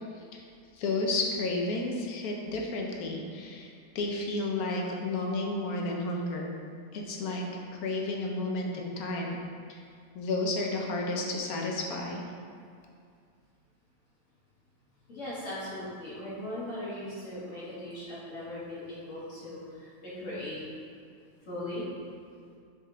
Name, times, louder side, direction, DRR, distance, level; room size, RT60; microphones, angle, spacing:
voice 1, 0.7-6.5 6.9-7.4 7.7-9.4 9.7-9.8 10.1-12.2, left 2 dB, 85° left, 0 dB, 1.3 m, -32 dB
voice 2, 15.1-20.6 21.5-21.8, left 1 dB, 60° left, -9 dB, 2.1 m, -39 dB
6.5 x 4.6 x 3.7 m, 2.3 s
omnidirectional pair, 1.5 m